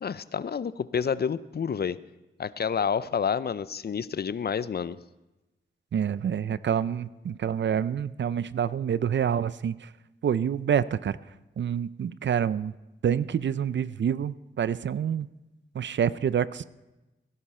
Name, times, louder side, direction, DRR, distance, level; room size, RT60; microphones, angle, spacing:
voice 1, 0.0-2.0 2.4-5.0, left 7 dB, 50° left, 17 dB, 0.5 m, -29 dB
voice 2, 5.9-9.9 10.2-11.2 11.6-12.7 13.0-15.3 15.7-16.6, right 8 dB, 65° right, 17 dB, 0.5 m, -27 dB
17.5 x 11.0 x 4.3 m, 1.0 s
cardioid pair, 65°, 20 cm